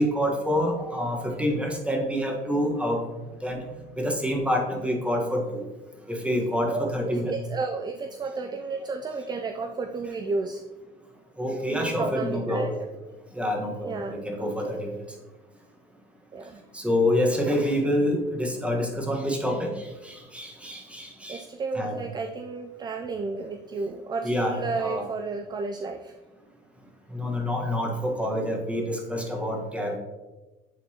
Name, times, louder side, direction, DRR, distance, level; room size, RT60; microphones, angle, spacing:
voice 1, 0.0-3.0 3.4-3.6 4.0-5.6 6.1-7.3 11.4-12.8 13.3-14.9 16.7-21.4 21.7-22.0 24.2-25.1 27.1-30.0, equal, 5° right, 0 dB, 1.2 m, -27 dB
voice 2, 6.7-10.6 11.7-12.7 13.9-14.8 16.3-16.6 21.3-26.1, right 4 dB, 25° right, 6 dB, 0.3 m, -32 dB
9.0 x 3.8 x 2.8 m, 1.2 s
cardioid pair, 110°, 17 cm